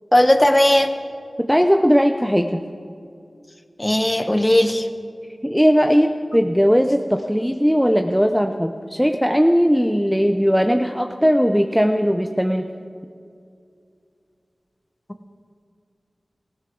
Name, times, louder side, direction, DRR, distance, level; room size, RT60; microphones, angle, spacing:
voice 1, 0.1-0.9 3.8-4.9, left 1 dB, 20° left, 8 dB, 1.1 m, -16 dB
voice 2, 1.4-2.6 5.4-12.7, equal, ahead, 5 dB, 0.7 m, -18 dB
18.5 x 16.0 x 3.9 m, 2.4 s
wide cardioid pair, 55°, 0 cm